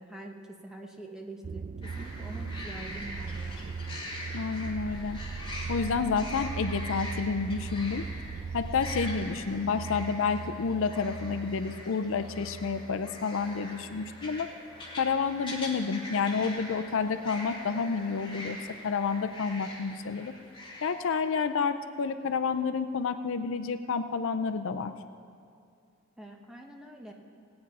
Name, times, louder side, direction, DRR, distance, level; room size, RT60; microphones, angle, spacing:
voice 1, 0.0-3.7 26.2-27.1, right 1 dB, 5° right, 1 dB, 1.0 m, -45 dB
sound 1, 1.4-14.5 14.8-15.4, right 5 dB, 50° right, 0.4 m, -39 dB
sound 2, 1.8-21.3, left 1 dB, 25° left, 1.9 m, -43 dB
voice 2, 4.3-5.2 5.7-8.1 8.5-14.5 15.0-18.6 18.8-20.3 20.8-24.9, left 5 dB, 65° left, 10 dB, 0.5 m, -29 dB
18.0 x 8.8 x 5.4 m, 2.4 s
head